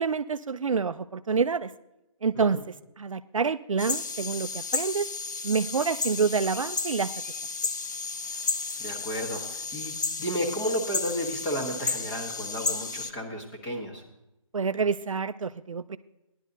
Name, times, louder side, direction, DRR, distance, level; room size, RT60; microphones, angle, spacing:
voice 1, 0.0-1.7 2.2-2.6 3.0-5.1 5.4-7.1 14.5-16.0, right 5 dB, 65° right, 13 dB, 0.6 m, -27 dB
sound 1, 3.8-13.1, left 4 dB, 30° left, 0.7 m, -33 dB
voice 2, 8.8-14.0, equal, 10° left, 0 dB, 1.4 m, -33 dB
14.5 x 11.0 x 4.0 m, 0.91 s
figure-of-eight pair, 165°, 18 cm